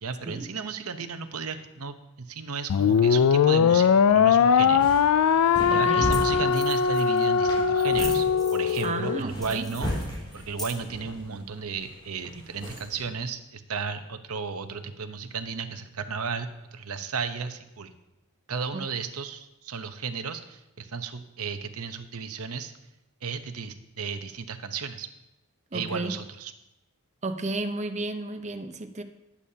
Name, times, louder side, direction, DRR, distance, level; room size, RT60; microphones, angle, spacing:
voice 1, 0.0-4.9 5.7-9.9 10.3-17.9 18.5-22.7 23.2-25.1 25.7-26.5, right 5 dB, 75° right, 9 dB, 0.9 m, -34 dB
sound 1, 2.7-9.2, left 6 dB, 70° left, 0.4 m, -21 dB
sound 2, 4.6-13.1, left 1 dB, 25° left, 4.3 m, -37 dB
voice 2, 5.7-6.5 8.8-9.7 25.7-26.1 27.2-29.0, right 2 dB, 30° right, 7 dB, 0.8 m, -33 dB
sound 3, 5.9-6.0 6.1-6.2 6.5-7.3 7.7-9.0 9.3-11.0, equal, ahead, 2.5 m, -41 dB
19.5 x 8.4 x 2.8 m, 0.94 s
head